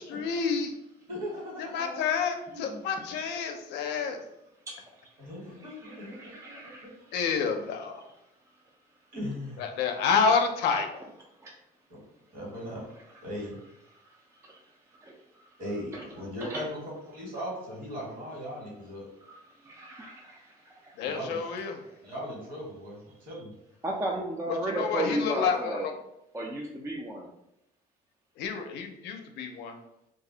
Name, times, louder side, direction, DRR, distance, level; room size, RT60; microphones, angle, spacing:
voice 1, 0.1-0.7 1.7-4.2 7.1-8.0 9.6-11.0 21.0-21.8 24.8-25.7 28.4-29.8, left 5 dB, 80° left, 5 dB, 0.5 m, -28 dB
voice 2, 1.1-2.1 2.5-2.9 5.2-6.7 9.1-9.8 12.3-12.8 13.2-13.6 15.6-16.8 17.1-19.1 21.0-21.4 22.0-23.5, equal, 55° right, -3 dB, 1.4 m, -38 dB
voice 3, 4.7-5.3 5.6-7.2 11.0-11.1 11.4-11.5 13.9-15.6 15.9-16.0 16.4-16.6 19.2-21.1 21.9-22.1 23.8-25.9 26.3-27.3, right 1 dB, 15° right, -1 dB, 0.4 m, -36 dB
2.4 x 2.0 x 3.7 m, 0.84 s
cardioid pair, 110°, 17 cm